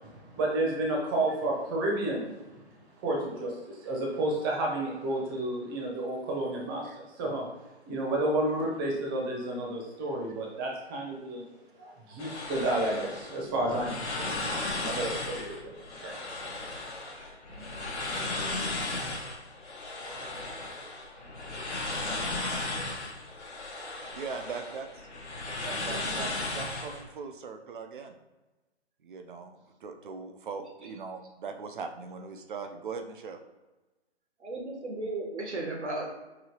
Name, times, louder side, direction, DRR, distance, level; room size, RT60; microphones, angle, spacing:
voice 1, 0.1-2.5 3.0-7.5 7.9-11.4 11.8-16.2 16.8-16.9 17.1-17.3, right 1 dB, 20° right, -2 dB, 0.8 m, -31 dB
sound 1, 12.2-27.0, left 2 dB, 85° left, 1.2 m, -35 dB
voice 2, 17.5-17.8 24.1-25.1 25.6-28.2 29.0-33.4, right 5 dB, 50° right, 6 dB, 0.5 m, -40 dB
voice 3, 34.4-36.1, right 2 dB, 90° right, 0 dB, 1.2 m, -34 dB
4.9 x 2.7 x 2.8 m, 1.1 s
hypercardioid pair, 145°, 33 cm